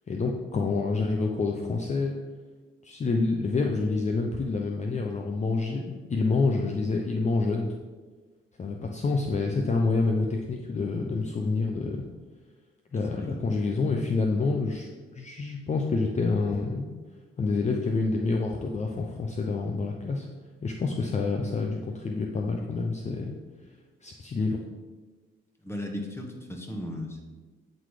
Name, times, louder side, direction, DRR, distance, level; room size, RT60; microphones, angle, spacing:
voice 1, 0.1-2.1 2.8-7.7 8.6-12.0 12.9-16.9 17.4-20.3 20.6-23.3 24.0-24.6, left 3 dB, 35° left, 1 dB, 0.8 m, -27 dB
voice 2, 25.6-27.2, left 1 dB, 10° left, 2 dB, 1.4 m, -36 dB
8.9 x 4.1 x 4.9 m, 1.3 s
cardioid pair, 90°, 20 cm